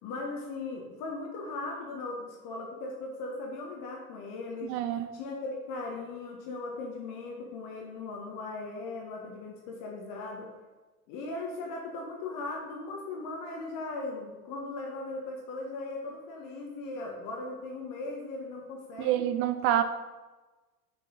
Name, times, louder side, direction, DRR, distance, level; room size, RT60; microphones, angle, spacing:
voice 1, 0.0-4.7 5.1-10.5 11.1-19.2, left 3 dB, 40° left, 0 dB, 1.3 m, -38 dB
voice 2, 4.7-5.2 19.0-19.8, right 11 dB, 30° right, 10 dB, 0.4 m, -27 dB
6.4 x 6.0 x 4.0 m, 1.2 s
figure-of-eight pair, 85°, 47 cm